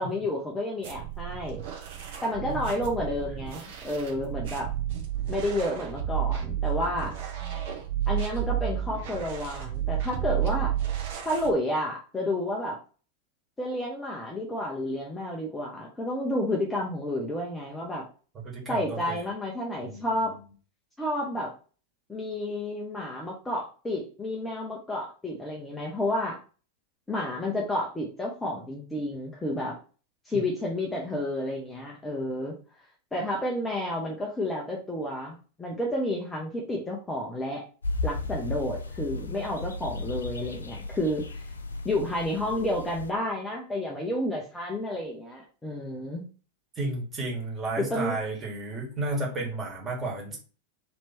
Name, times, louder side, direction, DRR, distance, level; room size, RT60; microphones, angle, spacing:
voice 1, 0.0-1.6 2.2-4.7 5.3-7.1 8.1-10.7 11.2-12.8 13.6-18.1 18.7-20.3 21.0-21.5 22.1-26.4 27.1-29.8 30.3-32.6 33.1-37.6 38.0-41.3 41.8-46.2 47.8-48.2, left 1 dB, 10° left, -2 dB, 0.7 m, -30 dB
sound 1, 0.8-11.5, right 11 dB, 55° right, 0.8 m, -31 dB
voice 2, 18.4-19.3 19.8-20.3 46.8-50.4, right 2 dB, 20° right, -3 dB, 1.7 m, -33 dB
sound 2, 37.8-43.1, left 2 dB, 75° left, 0.4 m, -35 dB
3.2 x 2.9 x 4.3 m, 0.38 s
figure-of-eight pair, 90°, 0 cm